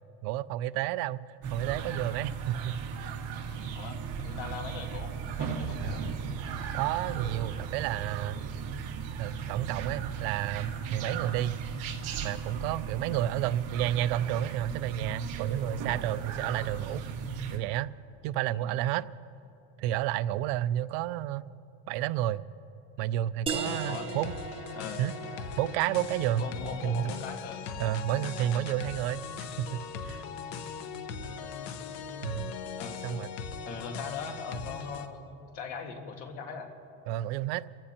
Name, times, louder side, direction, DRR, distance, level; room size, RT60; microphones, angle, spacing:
voice 1, 0.2-3.1 6.7-8.4 9.2-11.6 12.2-17.0 17.5-17.9 18.2-19.1 19.8-21.5 21.9-22.4 23.0-24.3 25.0-25.1 25.6-26.5 26.8-27.1 27.8-29.3 29.6-30.2 32.2-32.5 33.0-33.3 37.1-37.6, right 13 dB, 80° right, 16 dB, 0.5 m, -31 dB
sound 1, 1.4-17.6, right 6 dB, 55° right, 1.7 m, -36 dB
voice 2, 3.7-5.1 5.4-6.0 13.1-13.2 18.5-18.8 23.9-24.1 24.7-25.0 26.4-27.6 32.8-33.2 33.6-36.7, left 5 dB, 65° left, 3 dB, 1.9 m, -40 dB
sound 2, 23.5-35.1, left 6 dB, 85° left, 1.1 m, -40 dB
sound 3, 23.5-28.8, right 6 dB, 20° right, 0.6 m, -40 dB
29.0 x 15.0 x 2.9 m, 2.8 s
cardioid pair, 165°, 30 cm